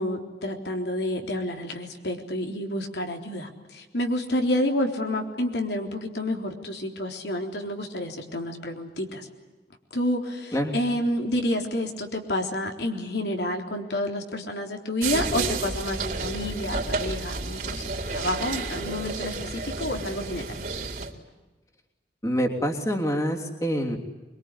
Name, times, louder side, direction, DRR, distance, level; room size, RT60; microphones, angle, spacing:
voice 1, 0.0-9.3 9.9-17.8 18.1-20.5, left 1 dB, 75° left, 3 dB, 3.8 m, -29 dB
sound 1, 15.0-21.1, right 3 dB, 50° right, 3.8 m, -31 dB
voice 2, 22.2-24.0, equal, 20° left, 1 dB, 3.1 m, -26 dB
24.5 x 24.0 x 10.0 m, 1.2 s
head